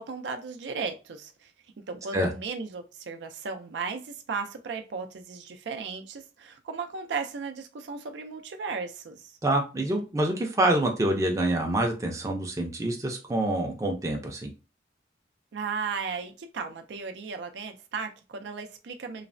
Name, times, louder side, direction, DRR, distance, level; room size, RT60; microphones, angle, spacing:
voice 1, 0.0-1.5 1.9-9.3 15.5-19.3, right 5 dB, 85° right, 6 dB, 0.4 m, -35 dB
voice 2, 9.4-14.5, right 1 dB, 20° right, 2 dB, 0.4 m, -26 dB
3.1 x 2.0 x 2.5 m, 0.31 s
head